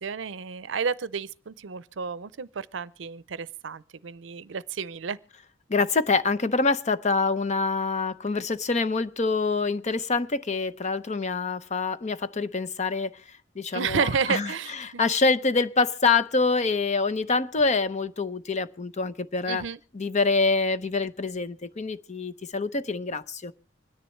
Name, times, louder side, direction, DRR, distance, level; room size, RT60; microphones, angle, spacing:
voice 1, 0.0-5.2 13.7-15.0 19.5-19.8, right 6 dB, 70° right, 0.6 m, -31 dB
voice 2, 5.7-13.2 13.6-14.5 14.8-19.6 19.9-23.5, left 4 dB, 40° left, 0.7 m, -26 dB
26.0 x 10.0 x 3.2 m
head